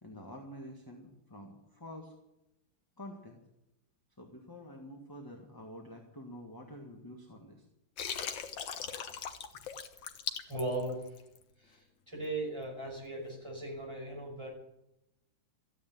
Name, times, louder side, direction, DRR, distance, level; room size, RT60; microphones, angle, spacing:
voice 1, 0.0-2.1 3.0-3.4 4.2-7.6 8.8-8.9, equal, 10° left, 2 dB, 1.5 m, -48 dB
Water, 8.0-11.4, left 7 dB, 80° left, 1.8 m, -39 dB
voice 2, 10.5-11.0 11.6-11.8 12.1-14.5, right 2 dB, 15° right, -2 dB, 6.0 m, -37 dB
14.5 x 9.7 x 9.3 m, 0.88 s
omnidirectional pair, 2.1 m